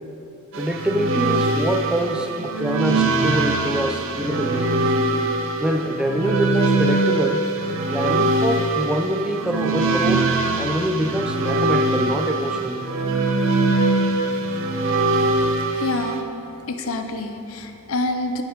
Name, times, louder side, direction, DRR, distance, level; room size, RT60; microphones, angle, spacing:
sound 1, 0.5-16.2, right 2 dB, 60° right, 0.7 m, -22 dB
voice 1, 0.6-4.9 5.6-7.5 7.9-10.3 10.5-12.8, equal, 5° right, 4 dB, 0.4 m, -25 dB
sound 2, 2.0-3.4 3.6-5.2 5.6-8.1 9.1-9.2 9.6-17.1, right 1 dB, 30° left, 2.0 m, -41 dB
voice 2, 15.8-16.2 16.7-18.4, left 2 dB, 65° left, 6 dB, 0.7 m, -27 dB
8.3 x 7.2 x 5.1 m, 2.9 s
head